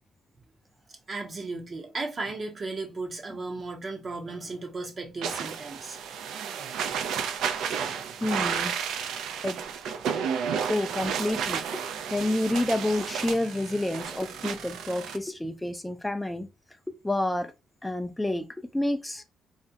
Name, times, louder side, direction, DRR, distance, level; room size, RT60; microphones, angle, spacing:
voice 1, 1.1-6.0, right 3 dB, 40° right, 0.6 m, -35 dB
sound 1, 5.2-15.2, right 7 dB, 80° right, 0.4 m, -32 dB
voice 2, 8.2-8.7 9.4-9.6 10.7-16.5 16.9-17.5 17.8-19.2, left 1 dB, 10° left, 0.3 m, -29 dB
2.4 x 2.1 x 2.6 m
cardioid pair, 90°, 0 cm